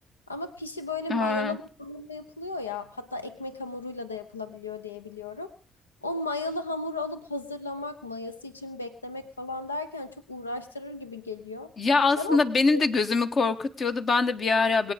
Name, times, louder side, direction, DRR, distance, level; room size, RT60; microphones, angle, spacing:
voice 1, 0.3-5.5 6.0-11.7 12.2-12.4 12.7-12.9, left 2 dB, 90° left, 10 dB, 0.9 m, -35 dB
voice 2, 1.1-1.6 11.8-14.9, left 4 dB, 45° left, 9 dB, 1.4 m, -23 dB
22.0 x 8.9 x 5.1 m, 0.38 s
figure-of-eight pair, 45°, 0 cm